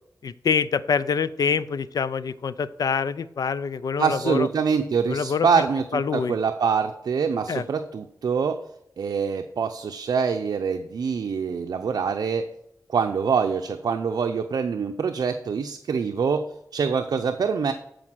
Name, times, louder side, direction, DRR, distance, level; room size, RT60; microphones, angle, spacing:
voice 1, 0.2-4.5 5.1-5.5 5.9-6.4 7.5-7.6, left 6 dB, 70° left, 15 dB, 0.5 m, -25 dB
voice 2, 4.0-8.6 9.0-12.5 12.9-16.5 16.7-17.7, right 6 dB, 75° right, 5 dB, 0.6 m, -25 dB
13.5 x 5.0 x 6.2 m, 0.77 s
wide cardioid pair, 105°, 7 cm